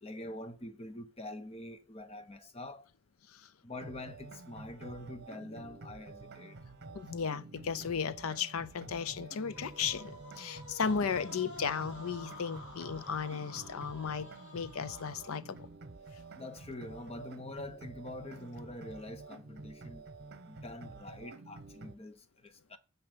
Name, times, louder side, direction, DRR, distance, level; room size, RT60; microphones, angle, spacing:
voice 1, 0.0-2.9 3.6-6.6 16.4-20.1 20.5-22.8, left 1 dB, 30° left, 0.9 m, -45 dB
sound 1, 3.7-22.0, right 3 dB, 50° right, 0.9 m, -50 dB
voice 2, 6.9-15.7, left 6 dB, 90° left, 0.6 m, -35 dB
sound 2, 9.3-15.7, left 1 dB, 60° left, 3.5 m, -50 dB
9.6 x 5.8 x 5.1 m
head